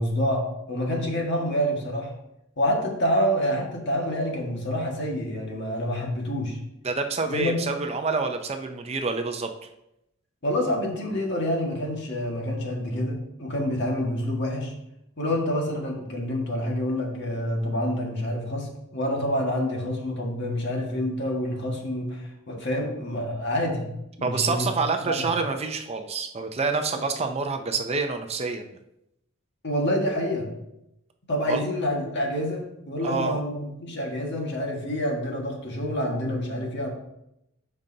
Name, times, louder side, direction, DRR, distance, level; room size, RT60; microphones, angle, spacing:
voice 1, 0.0-2.1 2.6-6.6 7.3-7.6 10.4-14.7 15.2-23.9 24.2-24.7 25.1-25.3 29.6-30.5 31.3-36.9, equal, 55° left, 0 dB, 1.7 m, -27 dB
voice 2, 6.8-9.5 24.2-28.7 31.5-31.6 33.0-33.4, right 4 dB, 30° right, 5 dB, 0.5 m, -27 dB
12.5 x 5.3 x 2.7 m, 0.85 s
head